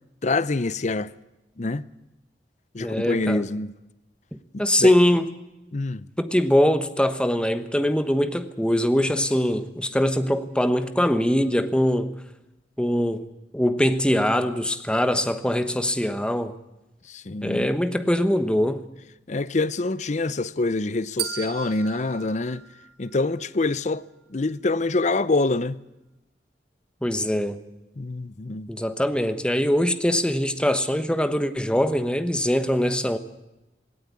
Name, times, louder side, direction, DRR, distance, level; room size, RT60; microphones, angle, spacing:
voice 1, 0.2-1.1 1.6-1.8 2.7-3.7 4.5-4.9 5.7-6.1 17.1-17.7 19.3-22.6 23.0-24.0 24.3-25.8 28.0-28.7, left 3 dB, 40° left, 0.6 m, -25 dB
voice 2, 2.8-3.4 4.6-5.3 6.2-12.1 12.8-13.3 13.5-16.5 17.4-18.8 27.0-27.6 28.7-33.2, equal, 5° left, 1.1 m, -22 dB
sound 1, 21.2-23.4, right 10 dB, 65° right, 1.9 m, -36 dB
17.5 x 17.0 x 9.7 m
head